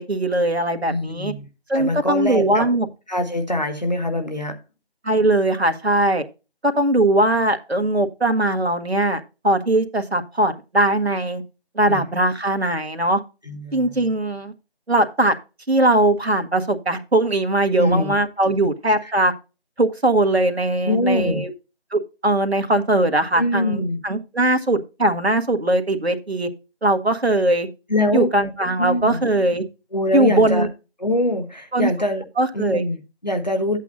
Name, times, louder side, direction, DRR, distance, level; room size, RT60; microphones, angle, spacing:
voice 1, 0.0-1.3 1.7-2.9 5.0-6.2 6.6-11.4 11.7-13.2 13.7-14.5 14.9-15.3 15.7-19.3 19.8-21.5 21.9-26.5 26.8-27.7 28.1-29.6 30.1-30.7 31.7-31.9 32.4-32.8, right 1 dB, 80° right, 1.6 m, -20 dB
voice 2, 0.9-1.5 1.7-2.7 3.1-4.6 11.9-12.1 13.5-14.1 17.7-18.2 20.8-21.4 23.3-24.0 27.9-28.3 28.8-29.2 29.9-30.7 31.0-32.2 32.5-33.8, left 1 dB, 45° left, 1.3 m, -23 dB
10.5 x 8.2 x 2.7 m
figure-of-eight pair, 180°, 31 cm